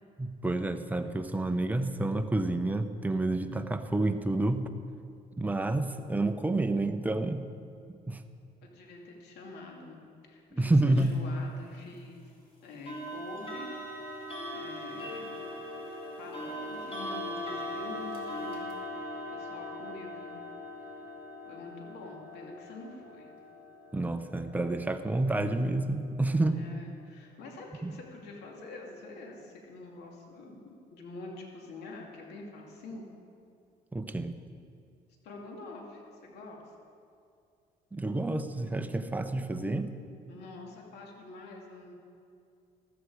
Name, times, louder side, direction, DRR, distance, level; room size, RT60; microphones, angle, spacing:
voice 1, 0.2-4.6 5.4-7.5 7.9-8.2 10.5-11.1 23.9-26.7 27.8-27.9 33.9-34.3 37.9-39.9, right 2 dB, 10° right, 8 dB, 0.8 m, -29 dB
voice 2, 8.6-10.0 10.3-12.2 12.6-13.7 14.0-14.3 14.5-15.4 16.2-20.4 21.4-23.4 26.4-30.6 30.9-33.1 35.2-36.7 40.3-41.9, left 2 dB, 75° left, 0 dB, 2.6 m, -46 dB
sound 1, 11.0-11.2 12.9-25.7, left 1 dB, 35° left, 3.1 m, -40 dB
14.5 x 13.5 x 4.9 m, 2.5 s
cardioid pair, 110°, 17 cm